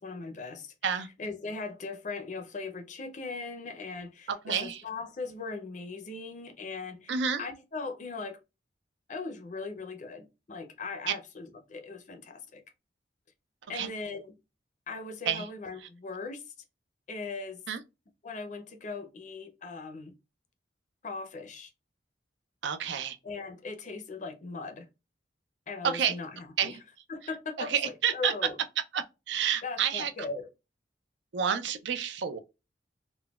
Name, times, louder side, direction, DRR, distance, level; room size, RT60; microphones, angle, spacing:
voice 1, 0.0-0.7 1.2-8.4 9.1-12.6 13.7-14.4 14.9-16.4 17.1-17.6 18.2-20.1 21.0-21.7 23.2-24.9 25.7-26.8 27.1-28.6 29.6-30.5, left 4 dB, 40° left, 0.5 m, -39 dB
voice 2, 4.3-4.8 7.1-7.4 11.1-11.2 13.7-13.9 15.3-15.5 17.7-17.8 22.6-23.2 25.8-26.2 26.6-26.8 27.6-28.3 28.9-30.1 31.3-32.4, right 7 dB, 70° right, 0.4 m, -29 dB
3.8 x 2.1 x 2.3 m
head